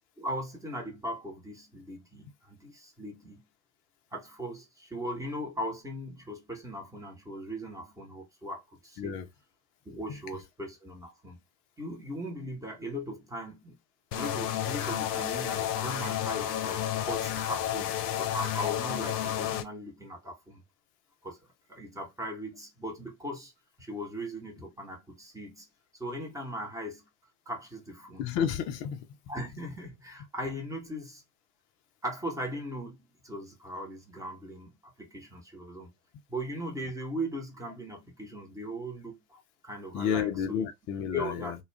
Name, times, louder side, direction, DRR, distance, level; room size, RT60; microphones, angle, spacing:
voice 1, 0.2-3.4 4.1-9.2 9.8-11.4 11.8-13.8 14.1-20.6 21.2-21.4 21.7-23.5 23.8-25.7 26.0-27.1 27.5-28.3 29.3-31.2 32.0-35.9 36.3-40.7 41.1-41.6, equal, 5° right, 0.9 m, -39 dB
sound 1, 14.1-19.6, left 11 dB, 70° left, 0.6 m, -31 dB
voice 2, 28.2-29.0 39.9-41.6, left 8 dB, 25° left, 0.4 m, -31 dB
2.3 x 2.2 x 3.1 m
figure-of-eight pair, 80°, 49 cm